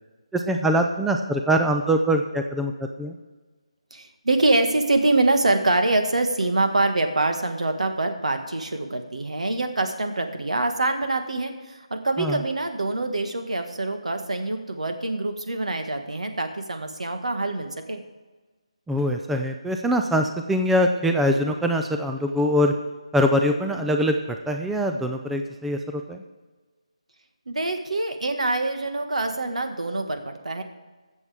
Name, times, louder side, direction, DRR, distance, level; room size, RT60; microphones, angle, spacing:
voice 1, 0.3-2.7 3.0-3.2 12.2-12.4 18.9-22.7 23.1-26.2, equal, 5° right, 4 dB, 0.4 m, -23 dB
voice 2, 3.9-18.0 27.5-30.6, right 2 dB, 80° right, 6 dB, 1.7 m, -25 dB
21.5 x 7.4 x 3.6 m, 1.3 s
figure-of-eight pair, 165°, 4 cm